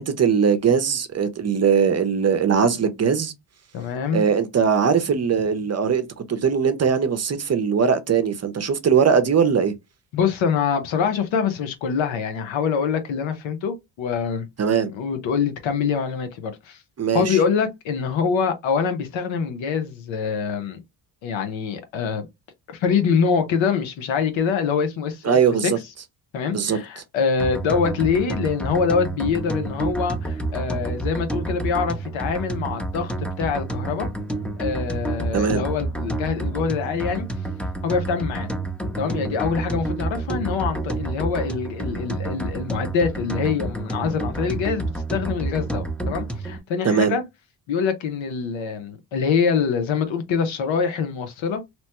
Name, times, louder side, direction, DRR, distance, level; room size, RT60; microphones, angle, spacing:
voice 1, 0.0-3.3 4.1-9.7 14.6-14.9 17.0-17.4 25.2-25.8 26.5-26.8 35.3-35.6 46.8-47.2, right 6 dB, 35° right, 0.6 m, -20 dB
voice 2, 3.7-4.2 10.1-14.5 14.9-16.8 17.1-20.8 21.2-22.3 22.7-25.4 25.6-25.7 26.3-34.1 34.6-37.3 37.8-38.5 39.0-47.2 47.7-51.6, left 6 dB, 85° left, 0.8 m, -24 dB
sound 1, 27.4-46.6, right 2 dB, 5° left, 0.6 m, -29 dB
3.0 x 2.1 x 2.9 m
cardioid pair, 75°, 45 cm